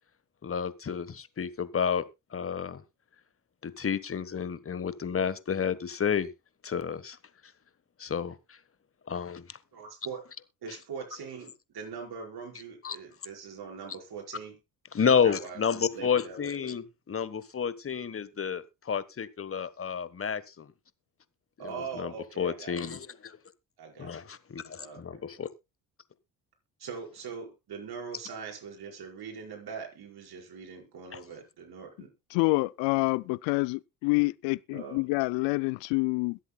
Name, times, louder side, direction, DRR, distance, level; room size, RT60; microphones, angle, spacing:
voice 1, 0.4-2.0 2.3-2.8 3.6-6.3 6.6-7.2 8.0-8.6 9.1-9.6 10.7-10.8 12.8-13.0 14.9-20.7 21.6-23.4 24.0-25.5 31.1-31.2, left 7 dB, 30° left, 1.3 m, -30 dB
voice 2, 9.7-10.2 10.6-14.6 15.1-16.5 21.6-22.8 23.8-24.2 24.8-25.2 26.8-32.1 34.7-35.0, right 6 dB, 55° right, 5.3 m, -42 dB
voice 3, 32.3-36.4, left 26 dB, 75° left, 0.6 m, -27 dB
22.0 x 8.0 x 2.3 m
hypercardioid pair, 60°, 44 cm